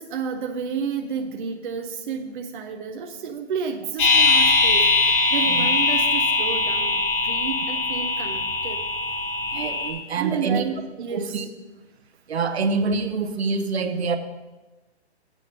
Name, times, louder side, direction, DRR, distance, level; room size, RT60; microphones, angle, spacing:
voice 1, 0.0-8.8 10.2-11.5, right 6 dB, 50° right, 4 dB, 0.7 m, -31 dB
sound 1, 4.0-9.9, left 3 dB, 50° left, 2.4 m, -21 dB
voice 2, 9.5-10.6 11.1-11.5 12.3-14.2, right 4 dB, 70° right, 8 dB, 1.0 m, -26 dB
7.7 x 5.2 x 6.6 m, 1.1 s
hypercardioid pair, 135°, 33 cm